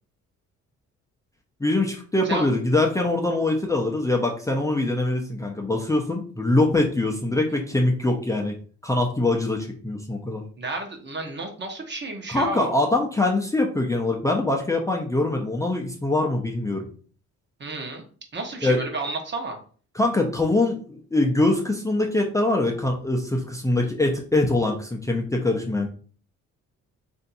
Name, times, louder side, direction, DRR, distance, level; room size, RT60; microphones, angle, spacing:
voice 1, 1.6-8.5 8.8-10.4 12.3-16.9 18.6-18.8 19.9-25.9, left 2 dB, 10° left, 0 dB, 0.6 m, -23 dB
voice 2, 10.6-12.8 17.6-18.0 18.3-19.6, right 2 dB, 35° right, 3 dB, 1.0 m, -31 dB
3.3 x 2.7 x 4.1 m, 0.42 s
cardioid pair, 90°, 30 cm